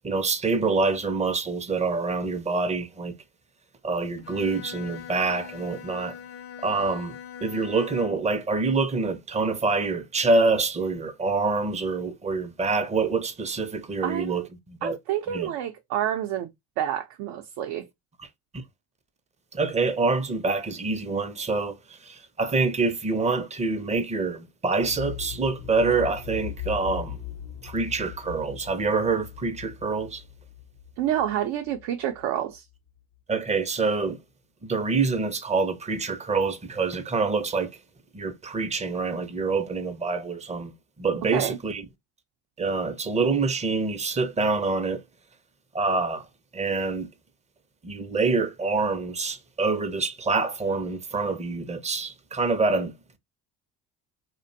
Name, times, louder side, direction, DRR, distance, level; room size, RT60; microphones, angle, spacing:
voice 1, 0.0-3.1 3.8-6.2 6.6-7.2 7.4-15.0 15.3-15.5 18.2-18.3 18.5-18.6 19.5-27.2 27.6-30.2 33.3-34.2 34.6-37.8 38.1-40.7 41.0-41.8 42.6-45.0 45.7-46.3 46.5-47.1 47.8-52.9, right 3 dB, 15° right, 0.5 m, -26 dB
Bowed string instrument, 4.2-8.4, left 9 dB, 35° left, 0.4 m, -42 dB
voice 2, 14.0-14.5 14.8-16.5 16.8-17.9 31.0-32.6 41.3-41.6, right 11 dB, 70° right, 0.6 m, -28 dB
sound 1, 24.8-32.6 32.9-33.0, left 11 dB, 70° left, 0.7 m, -39 dB
2.5 x 2.1 x 2.5 m
supercardioid pair, 75°, 43 cm